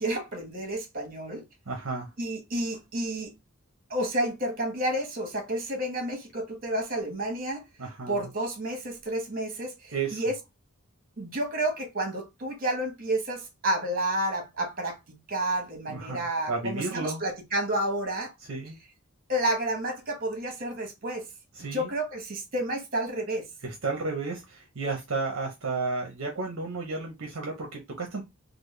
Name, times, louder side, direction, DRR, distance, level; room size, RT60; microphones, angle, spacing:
voice 1, 0.0-1.4 2.2-3.3 3.9-7.6 8.1-10.3 11.2-15.0 15.3-18.3 19.3-21.2 21.6-23.4, right 1 dB, 40° right, 1.1 m, -30 dB
voice 2, 1.7-2.1 7.8-8.3 9.9-10.2 15.9-17.2 18.4-18.8 21.5-21.9 23.6-28.2, right 3 dB, 60° right, 0.7 m, -33 dB
3.4 x 2.0 x 3.1 m
head